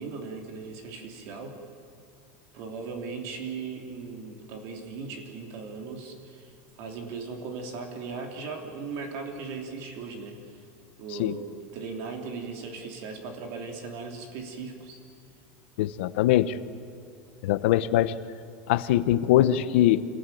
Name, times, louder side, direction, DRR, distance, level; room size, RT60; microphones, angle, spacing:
voice 1, 0.0-1.6 2.5-10.4 11.0-15.0, right 4 dB, 45° right, 3 dB, 3.2 m, -38 dB
voice 2, 15.8-16.6 17.4-18.1 18.7-20.1, left 13 dB, 70° left, 13 dB, 1.0 m, -22 dB
26.5 x 18.5 x 9.3 m, 2.6 s
supercardioid pair, 175°, 6 cm